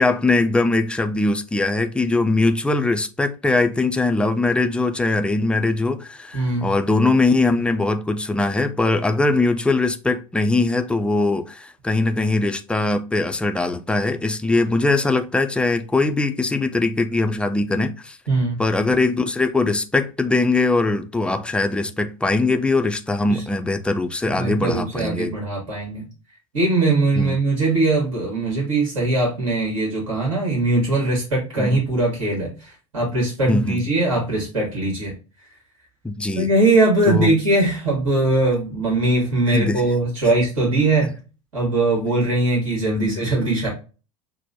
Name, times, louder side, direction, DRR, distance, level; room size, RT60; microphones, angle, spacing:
voice 1, 0.0-18.2 18.6-25.3 27.2-27.4 31.6-31.8 33.5-33.8 36.0-36.5 37.1-37.3 39.5-39.8 42.9-43.2, left 2 dB, 5° left, 0.4 m, -21 dB
voice 2, 6.3-6.7 18.3-18.6 23.3-23.4 24.2-26.0 26.5-35.1 36.4-41.1 41.5-43.7, right 2 dB, 65° right, 1.9 m, -21 dB
5.8 x 2.2 x 2.7 m
figure-of-eight pair, 75°, 17 cm